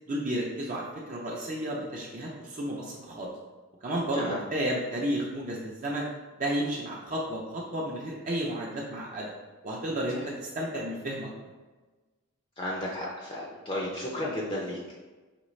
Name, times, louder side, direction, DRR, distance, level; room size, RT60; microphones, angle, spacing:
voice 1, 0.1-3.3 3.8-6.1 6.4-9.3 9.6-11.3, right 1 dB, 40° right, -3 dB, 0.5 m, -32 dB
voice 2, 12.6-14.8, left 1 dB, 25° left, -3 dB, 0.5 m, -33 dB
5.0 x 3.2 x 3.1 m, 1.3 s
head